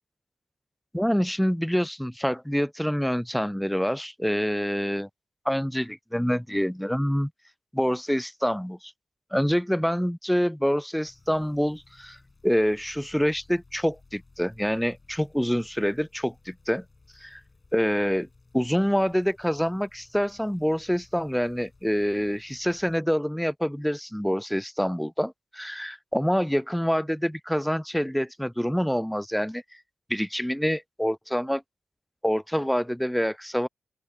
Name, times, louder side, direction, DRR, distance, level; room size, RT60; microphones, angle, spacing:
voice 1, 0.9-5.1 5.5-7.3 7.7-8.9 9.3-12.2 12.4-16.8 17.2-17.4 17.7-18.3 18.5-29.6 30.1-31.6 32.2-33.7, equal, ahead, 0.3 m, -26 dB
sound 1, 11.0-23.0, left 3 dB, 30° left, 7.7 m, -58 dB
open air
wide cardioid pair, 135°, 0 cm